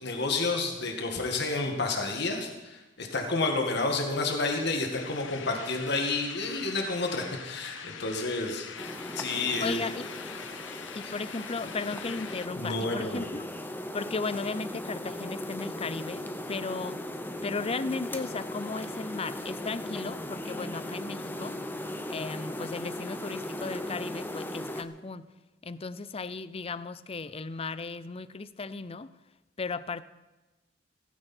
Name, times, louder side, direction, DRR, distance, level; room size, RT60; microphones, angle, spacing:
voice 1, 0.0-8.7 9.2-9.8 12.5-13.3, left 3 dB, 65° left, 3 dB, 2.0 m, -30 dB
sound 1, 4.9-12.5, left 7 dB, 80° left, 1.0 m, -43 dB
sound 2, 8.8-24.8, left 1 dB, 10° left, 1.0 m, -38 dB
voice 2, 9.6-10.1 10.9-13.5 13.9-17.0 17.4-21.6 22.1-25.3 25.6-29.1 29.6-30.0, left 4 dB, 30° left, 16 dB, 0.6 m, -35 dB
16.5 x 15.5 x 4.5 m, 1.1 s
head